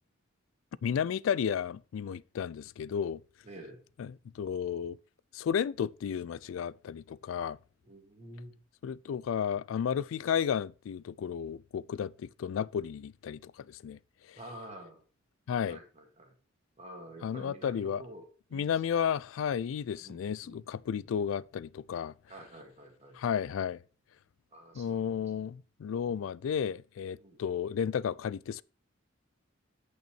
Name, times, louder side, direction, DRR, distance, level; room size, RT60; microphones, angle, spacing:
voice 1, 0.8-3.2 4.0-5.0 5.3-7.6 8.8-14.0 14.3-14.4 15.5-15.8 17.2-18.0 18.5-22.1 23.2-23.8 24.7-28.6, left 8 dB, 75° left, 0.3 m, -33 dB
voice 2, 3.4-3.8 7.8-8.5 14.4-15.0 15.7-16.3 16.8-18.7 20.0-20.6 20.9-21.1 22.3-23.2 24.5-25.1 27.2-27.4, right 1 dB, 35° right, 2.1 m, -49 dB
9.0 x 5.5 x 4.4 m
head